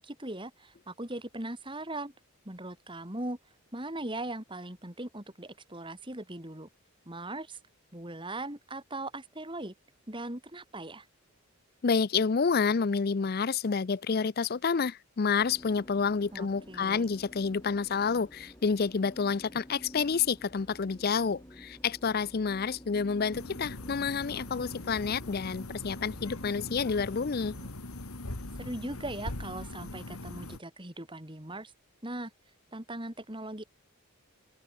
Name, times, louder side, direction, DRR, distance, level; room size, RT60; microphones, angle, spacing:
voice 1, 0.0-2.1 2.5-3.4 3.7-6.7 7.1-7.6 7.9-9.7 10.1-11.1 16.3-17.1 28.6-31.7 32.0-32.3 32.7-33.6, right 1 dB, 20° right, 3.5 m, -39 dB
voice 2, 11.8-27.5, left 5 dB, 45° left, 0.5 m, -29 dB
sound 1, 15.4-27.7, equal, 15° left, 6.4 m, -51 dB
sound 2, 23.3-30.6, left 2 dB, 85° left, 2.3 m, -41 dB
head